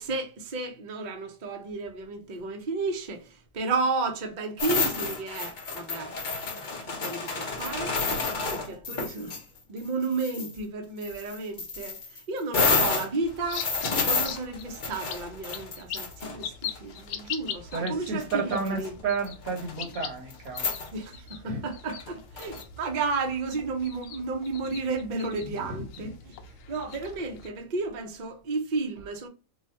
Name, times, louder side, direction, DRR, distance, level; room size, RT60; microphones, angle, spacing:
voice 1, 0.0-6.1 6.8-8.1 8.5-9.4 9.7-18.9 20.9-26.4 26.7-29.3, right 3 dB, 45° right, 0.6 m, -32 dB
sound 1, 4.6-9.4 9.8-10.5 11.0-16.8 17.7-17.8 18.2-18.9 19.2-19.7 20.3-20.4 20.6-20.9 21.9-22.6, left 4 dB, 45° left, 0.8 m, -30 dB
sound 2, 13.2-27.5, left 8 dB, 75° left, 1.0 m, -42 dB
voice 2, 17.7-20.7 21.5-21.6 25.4-25.5, right 4 dB, 80° right, 1.4 m, -32 dB
3.1 x 2.3 x 4.2 m
omnidirectional pair, 1.4 m